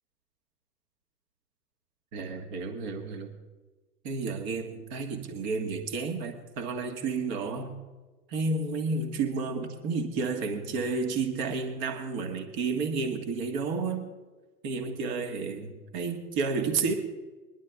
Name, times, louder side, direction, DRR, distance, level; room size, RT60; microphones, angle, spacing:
voice 1, 2.1-3.3 4.0-7.7 8.3-14.1 14.6-16.9, right 4 dB, 40° right, 4 dB, 1.7 m, -31 dB
22.0 x 11.0 x 3.6 m, 1.3 s
figure-of-eight pair, 95°, 48 cm